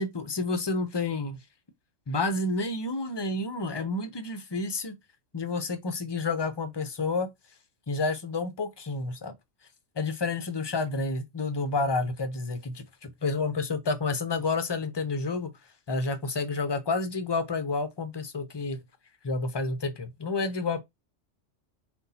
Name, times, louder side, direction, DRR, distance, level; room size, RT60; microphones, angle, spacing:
voice 1, 0.0-1.4 2.1-4.9 5.3-7.3 7.9-9.3 10.0-15.5 15.9-18.8 19.2-20.8, left 3 dB, 30° left, 0.5 m, -30 dB
4.2 x 4.0 x 2.7 m
omnidirectional pair, 1.3 m